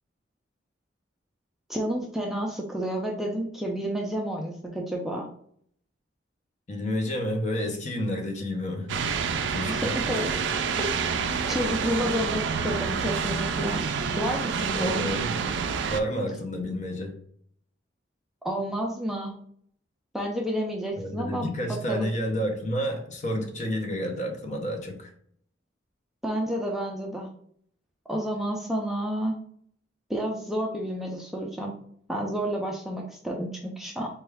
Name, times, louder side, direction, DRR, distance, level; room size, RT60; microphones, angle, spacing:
voice 1, 1.7-5.3 9.7-9.8 10.1-10.3 10.8-13.8 14.2-15.2 18.4-19.3 20.1-22.1 26.2-27.3 28.1-29.4 30.1-31.7 32.1-34.1, equal, ahead, -1 dB, 0.4 m, -30 dB
voice 2, 6.7-8.9 9.2-10.0 14.7-15.4 15.9-17.2 21.0-25.1, equal, 40° left, 3 dB, 0.7 m, -30 dB
sound 1, 8.9-16.0, right 5 dB, 70° right, 0.4 m, -28 dB
4.2 x 2.3 x 3.3 m, 0.63 s
head